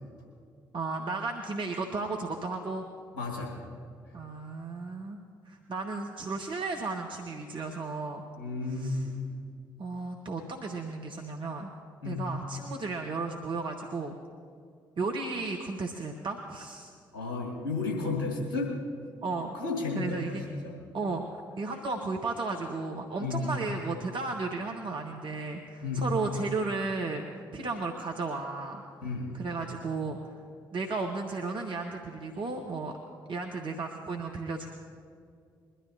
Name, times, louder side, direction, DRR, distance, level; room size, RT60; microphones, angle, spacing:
voice 1, 0.7-2.8 4.1-5.2 5.4-8.2 8.6-9.1 9.8-11.7 12.0-14.2 15.0-16.9 19.2-19.5 19.9-20.4 20.9-21.2 21.6-27.3 27.5-30.3 30.7-33.0 33.3-34.7, right 3 dB, 50° right, 2 dB, 1.3 m, -34 dB
voice 2, 3.1-3.5 8.4-9.0 12.0-12.2 17.1-18.7 19.5-20.4 20.6-20.7 23.2-23.5 25.8-26.0 29.0-29.3, left 3 dB, 80° left, -2 dB, 2.4 m, -32 dB
22.5 x 12.5 x 2.9 m, 2.2 s
figure-of-eight pair, 45°, 11 cm